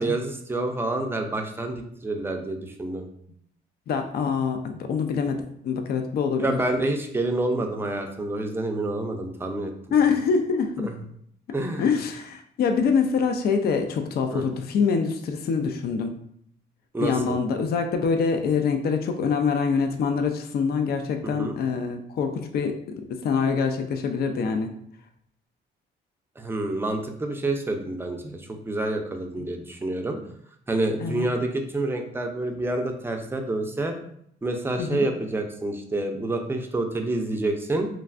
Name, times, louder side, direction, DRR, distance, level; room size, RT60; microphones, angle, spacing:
voice 1, 0.0-3.1 6.4-9.7 10.8-10.9 11.5-11.9 14.3-14.5 16.9-17.4 21.4-21.6 26.4-30.2 30.7-34.0 34.4-37.9, right 2 dB, 10° right, 3 dB, 0.4 m, -28 dB
voice 2, 3.9-6.6 9.9-10.9 11.8-16.1 17.0-24.7 29.4-29.5 31.0-31.3 34.8-35.1, left 5 dB, 50° left, 6 dB, 0.4 m, -25 dB
3.2 x 2.4 x 2.4 m, 0.68 s
cardioid pair, 90°, 20 cm